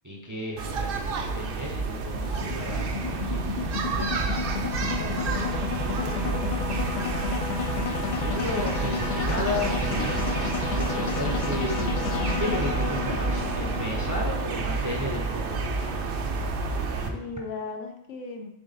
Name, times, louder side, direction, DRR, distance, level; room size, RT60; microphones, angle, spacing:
voice 1, 0.0-4.1 8.0-10.4 10.7-16.2, left 1 dB, 20° right, -1 dB, 0.6 m, -34 dB
sound 1, 0.6-17.1, right 4 dB, 55° right, 0.7 m, -29 dB
sound 2, 0.7-17.1, left 6 dB, 50° left, 0.6 m, -32 dB
voice 2, 4.9-6.5 17.1-18.5, left 4 dB, 70° left, 4 dB, 1.1 m, -38 dB
6.8 x 3.8 x 4.1 m, 0.87 s
omnidirectional pair, 1.4 m